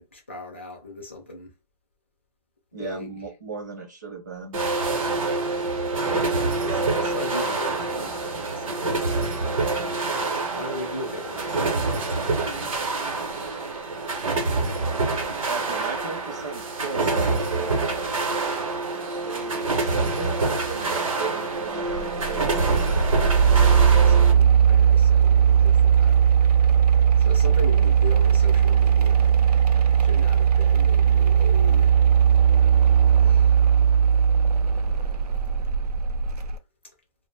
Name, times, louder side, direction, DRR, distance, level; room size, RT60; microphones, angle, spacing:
voice 1, 0.0-1.5 2.8-3.1 5.1-5.6 6.6-9.7 10.5-12.7 14.0-14.5 23.6-26.3 27.2-29.3 30.0-31.9 33.1-33.6 36.3-36.4, left 2 dB, 20° left, 0.4 m, -38 dB
voice 2, 2.7-4.6 15.5-17.8 19.1-23.0, right 5 dB, 30° right, 0.6 m, -36 dB
sound 1, 4.5-24.3, right 3 dB, 60° right, 0.8 m, -26 dB
sound 2, 21.8-36.6, right 8 dB, 80° right, 0.4 m, -18 dB
2.5 x 2.0 x 3.1 m
hypercardioid pair, 175°, 20 cm